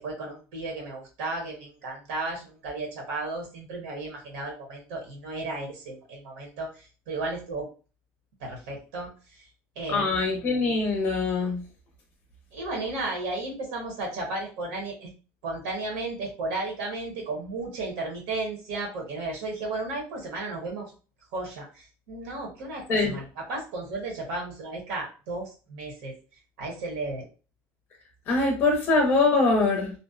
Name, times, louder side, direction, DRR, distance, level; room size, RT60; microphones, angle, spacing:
voice 1, 0.0-7.7 8.4-9.1 9.8-10.2 12.5-15.1 15.4-20.9 21.3-26.1 26.6-27.3 28.3-28.4, right 2 dB, 75° right, 0 dB, 0.9 m, -34 dB
voice 2, 9.9-11.6 22.9-23.2 28.3-29.9, left 3 dB, 30° left, 1 dB, 0.5 m, -23 dB
2.5 x 2.0 x 2.4 m, 0.34 s
cardioid pair, 175°, 6 cm